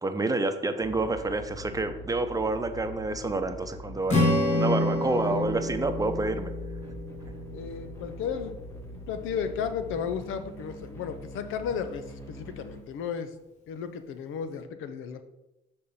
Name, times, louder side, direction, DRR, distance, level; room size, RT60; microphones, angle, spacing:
voice 1, 0.0-6.5, right 2 dB, 20° right, 8 dB, 0.7 m, -28 dB
sound 1, 0.8-12.8, left 1 dB, 15° left, 1.5 m, -43 dB
Strum, 4.1-8.4, left 1 dB, 35° left, 1.9 m, -28 dB
voice 2, 5.0-5.4 7.5-8.6 8.9-13.3 13.7-15.2, left 7 dB, 85° left, 10 dB, 0.7 m, -34 dB
6.5 x 4.4 x 5.5 m, 0.94 s
cardioid pair, 90°, 20 cm